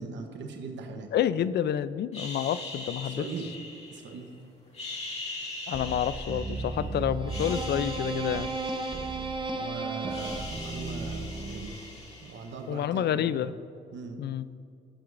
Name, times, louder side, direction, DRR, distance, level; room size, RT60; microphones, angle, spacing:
voice 1, 0.0-1.1 3.0-3.5 3.9-4.3 9.5-11.8 12.2-13.3 13.9-14.2, right 4 dB, 65° right, 4 dB, 1.0 m, -40 dB
voice 2, 1.1-3.3 5.7-8.5 12.7-13.5 14.2-14.5, left 10 dB, 55° left, 15 dB, 0.4 m, -29 dB
sound 1, 2.1-4.3 4.7-6.9 7.2-9.6 9.9-12.7, left 2 dB, 30° left, 2.0 m, -41 dB
sound 2, 5.7-12.0, right 3 dB, 25° right, 0.8 m, -34 dB
16.0 x 6.2 x 2.5 m, 2.4 s
cardioid pair, 90°, 20 cm